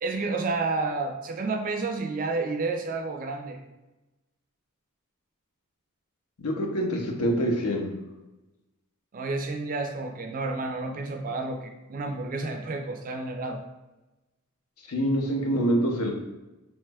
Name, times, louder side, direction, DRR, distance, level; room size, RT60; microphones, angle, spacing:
voice 1, 0.0-3.6 9.1-13.6, right 3 dB, 40° right, 5 dB, 0.3 m, -30 dB
voice 2, 6.4-7.9 14.9-16.1, equal, 85° left, 1 dB, 0.6 m, -25 dB
3.0 x 2.2 x 3.3 m, 1.0 s
head